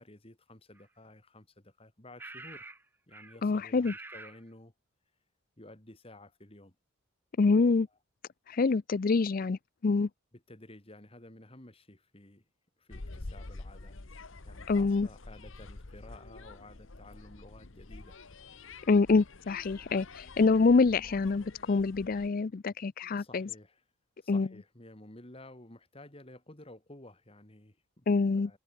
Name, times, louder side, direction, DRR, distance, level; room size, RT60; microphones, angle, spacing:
voice 1, 0.0-2.8 3.1-4.7 5.6-6.8 10.3-12.4 12.8-18.2 23.0-23.8 24.2-28.1 28.3-28.6, left 1 dB, 25° left, 2.3 m, -53 dB
sound 1, 0.8-0.9 2.2-2.8 3.1-3.4 3.8-4.4, right 2 dB, 10° right, 0.6 m, -46 dB
voice 2, 3.4-3.9 7.4-7.9 8.5-10.1 14.7-15.1 18.9-23.5 24.3-24.5 28.1-28.5, left 4 dB, 40° left, 0.4 m, -26 dB
sound 2, 12.9-22.3, left 2 dB, 65° left, 1.2 m, -47 dB
head